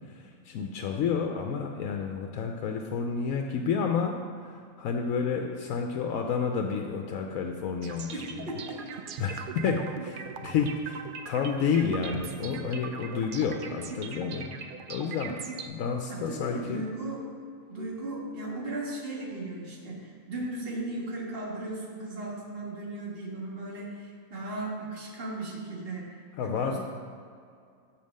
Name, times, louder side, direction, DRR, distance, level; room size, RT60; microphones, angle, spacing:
voice 1, 0.0-8.5 9.2-14.6 14.9-15.4 15.7-16.8 26.4-26.8, left 6 dB, 85° left, 3 dB, 1.0 m, -30 dB
sound 1, 7.8-15.7, right 6 dB, 70° right, 0.5 m, -41 dB
voice 2, 8.1-8.8 16.1-17.3 17.7-26.8, right 2 dB, 45° right, -3 dB, 1.7 m, -36 dB
7.2 x 4.7 x 6.4 m, 2.3 s
omnidirectional pair, 1.4 m